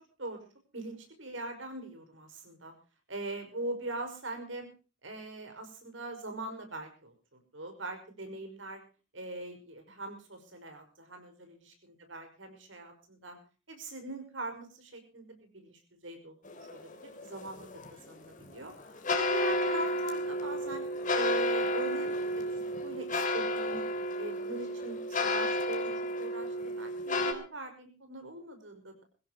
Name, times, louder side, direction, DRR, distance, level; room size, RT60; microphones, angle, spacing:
voice 1, 0.7-2.7 3.1-4.7 5.0-8.8 9.1-13.4 13.7-20.8 21.1-23.9 24.2-25.9 26.2-29.0, right 2 dB, 75° right, 6 dB, 5.6 m, -42 dB
sound 1, 16.4-27.3, left 1 dB, 40° left, 3.2 m, -32 dB
23.0 x 16.0 x 3.0 m, 0.35 s
head